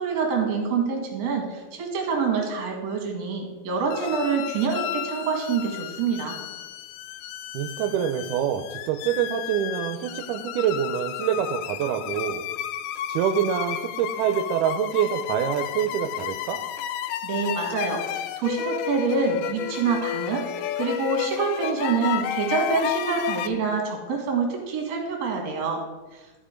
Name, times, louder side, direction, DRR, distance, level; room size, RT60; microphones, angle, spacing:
voice 1, 0.0-6.4 17.2-20.5 20.8-25.8 26.1-26.3, right 5 dB, 60° right, 1 dB, 3.0 m, -26 dB
sound 1, 3.9-23.5, left 11 dB, 85° left, 2.1 m, -32 dB
voice 2, 7.5-12.4 13.1-16.6, right 9 dB, 85° right, 6 dB, 2.1 m, -26 dB
13.0 x 5.0 x 5.0 m, 1.2 s
omnidirectional pair, 3.7 m